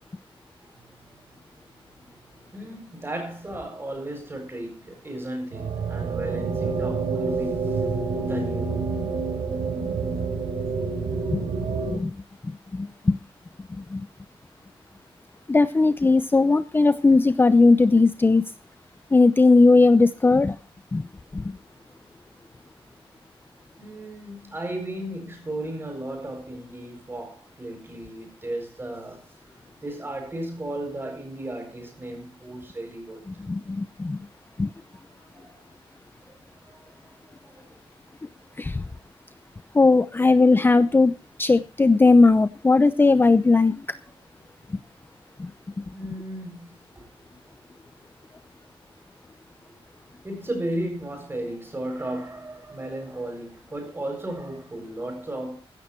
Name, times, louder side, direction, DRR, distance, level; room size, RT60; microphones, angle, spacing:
voice 1, 2.5-7.9 8.3-8.9 23.8-29.3 29.8-33.2 34.9-35.6 36.6-37.1 37.4-37.8 45.9-47.1 50.2-55.6, right 1 dB, 25° right, 7.8 m, -35 dB
sound 1, 5.5-12.0, right 4 dB, 90° right, 3.9 m, -27 dB
voice 2, 12.7-13.2 13.8-14.1 15.5-18.4 19.1-20.6 20.9-21.1 21.3-21.6 33.5-34.3 34.6-34.7 38.6-38.8 39.7-41.1 41.4-43.8 45.4-45.5 45.8-45.9, left 3 dB, 20° left, 0.7 m, -18 dB
16.0 x 13.0 x 4.5 m
wide cardioid pair, 125°, 10 cm